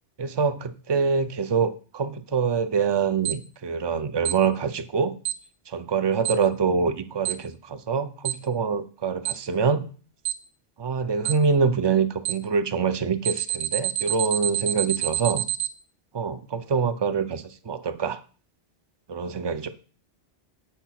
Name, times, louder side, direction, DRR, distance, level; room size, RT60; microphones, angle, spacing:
voice 1, 0.2-5.1 5.7-9.9 10.8-15.5 16.1-18.2 19.1-19.7, right 5 dB, 35° right, 0.4 m, -25 dB
Alarm, 3.3-3.4 4.3-4.4 5.3-5.4 6.3-6.4 7.3-7.4 8.3-8.4 9.3-9.4 10.3-10.4 11.3-11.4 12.3-12.4 13.3-15.7, right 13 dB, 70° right, 0.9 m, -26 dB
8.2 x 4.3 x 5.8 m
omnidirectional pair, 1.1 m